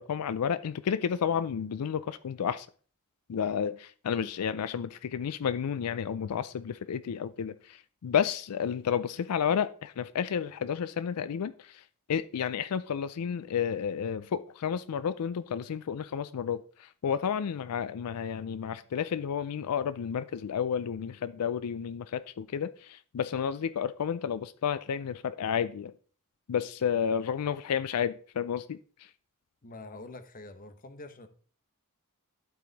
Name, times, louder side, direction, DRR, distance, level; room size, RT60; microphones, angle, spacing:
voice 1, 0.0-2.7 3.3-11.8 12.1-25.9 26.5-29.1, left 7 dB, 90° left, 0.4 m, -31 dB
voice 2, 29.6-31.3, left 2 dB, 40° left, 1.0 m, -45 dB
11.5 x 4.7 x 4.0 m
head